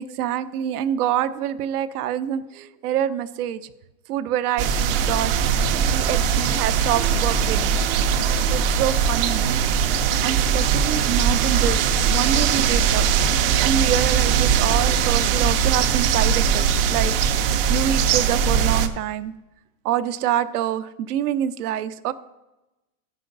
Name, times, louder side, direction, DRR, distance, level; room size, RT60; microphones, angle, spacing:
voice 1, 0.0-3.7 4.1-5.3 5.9-7.8 8.5-9.5 10.2-13.1 13.6-17.1 17.7-19.3 19.8-22.1, right 10 dB, 75° right, 13 dB, 0.7 m, -26 dB
sound 1, 4.6-18.9, right 7 dB, 40° right, 0.6 m, -20 dB
15.0 x 5.7 x 3.9 m, 1.0 s
supercardioid pair, 170°, 45 cm